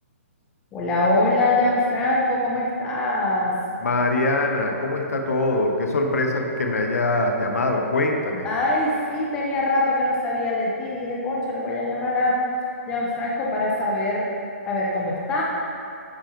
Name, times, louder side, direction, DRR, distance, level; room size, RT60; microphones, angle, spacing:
voice 1, 0.7-3.5 8.4-12.4 12.9-14.3 14.7-15.4, left 2 dB, 10° left, -4 dB, 0.6 m, -23 dB
voice 2, 3.8-8.5, left 2 dB, 85° left, 2 dB, 1.0 m, -23 dB
10.0 x 5.2 x 3.1 m, 2.6 s
hypercardioid pair, 170°, 8 cm